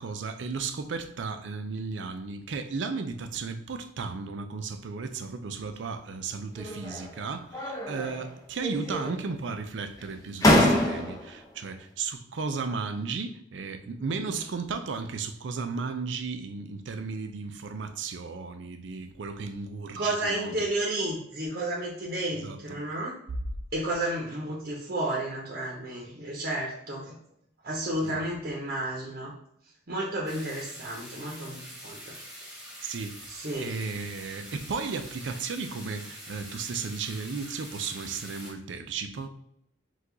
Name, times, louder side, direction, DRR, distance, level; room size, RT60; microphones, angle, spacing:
voice 1, 0.0-20.5 22.4-22.9 28.0-28.2 32.8-33.3 33.6-39.3, right 4 dB, 70° right, 0.5 m, -35 dB
sound 1, 6.6-7.2 7.5-8.3 8.6-9.4 10.0-10.1 10.4-11.4, left 1 dB, 20° left, 0.6 m, -25 dB
voice 2, 14.0-14.3 20.0-23.1 23.7-27.2 27.6-29.3 29.9-32.1 32.8-32.9 33.3-33.7, right 1 dB, 55° right, 0.8 m, -32 dB
sound 2, 30.3-38.5, equal, ahead, 1.2 m, -45 dB
4.6 x 2.4 x 3.8 m
head